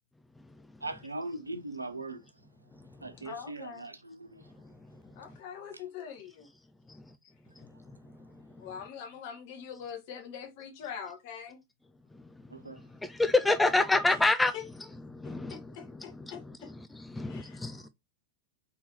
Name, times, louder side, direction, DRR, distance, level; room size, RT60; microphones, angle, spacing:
voice 1, 0.8-2.5 3.0-4.5 7.7-7.8 12.5-12.8 17.7-17.9, right 2 dB, 80° right, 0.5 m, -40 dB
voice 2, 3.2-3.9 5.2-6.5 7.6-7.7 8.6-11.6 14.1-14.2 14.5-14.7 15.2-16.7 17.3-17.7, left 7 dB, 50° left, 1.2 m, -43 dB
voice 3, 7.6-8.3 13.0-14.5 15.1-15.7 17.1-17.9, left 2 dB, 5° left, 0.4 m, -27 dB
4.2 x 3.6 x 2.9 m
figure-of-eight pair, 90°, 0 cm